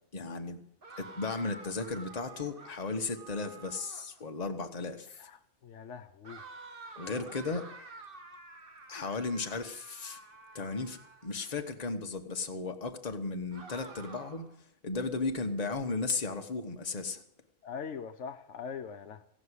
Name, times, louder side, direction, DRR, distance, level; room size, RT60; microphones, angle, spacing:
voice 1, 0.1-0.6 1.0-5.2 7.0-7.7 8.9-10.2 10.5-14.5 14.8-17.2, left 3 dB, 35° left, 5 dB, 1.2 m, -35 dB
sound 1, 0.8-4.2 6.2-11.5 13.5-14.5, right 3 dB, 45° right, 1.4 m, -50 dB
voice 2, 5.6-6.4 17.6-19.3, left 6 dB, 70° left, 6 dB, 1.0 m, -42 dB
16.0 x 6.2 x 9.8 m, 0.68 s
omnidirectional pair, 1.3 m